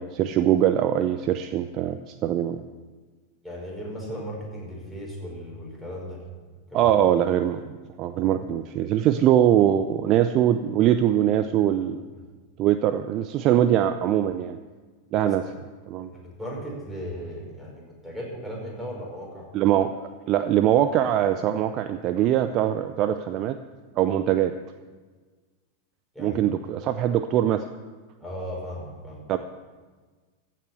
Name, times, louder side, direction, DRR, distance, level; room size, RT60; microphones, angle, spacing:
voice 1, 0.0-2.6 6.7-12.0 12.6-14.6 15.1-15.4 15.9-16.1 19.5-23.6 23.9-24.5 26.2-27.6 29.3-29.4, right 11 dB, 35° right, 10 dB, 0.5 m, -22 dB
voice 2, 3.4-6.2 6.7-6.9 12.1-12.2 15.2-15.3 16.0-19.5 26.1-26.4 28.2-29.2, equal, 5° right, -3 dB, 5.3 m, -36 dB
15.5 x 7.5 x 8.0 m, 1.4 s
figure-of-eight pair, 90°, 0 cm